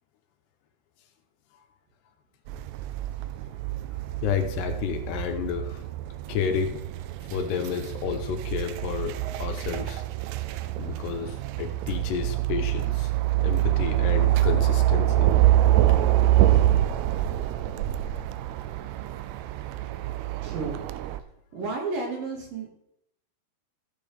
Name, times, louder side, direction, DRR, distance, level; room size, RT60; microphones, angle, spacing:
sound 1, 2.5-21.2, right 14 dB, 85° right, 2.4 m, -25 dB
voice 1, 4.2-5.8 6.3-6.8 7.3-9.1 9.4-10.0 10.8-13.1 13.4-15.3, left 8 dB, 80° left, 6 dB, 3.1 m, -30 dB
voice 2, 20.4-20.8 21.5-22.7, right 3 dB, 60° right, 0 dB, 3.4 m, -32 dB
14.5 x 6.9 x 3.4 m, 0.76 s
omnidirectional pair, 4.8 m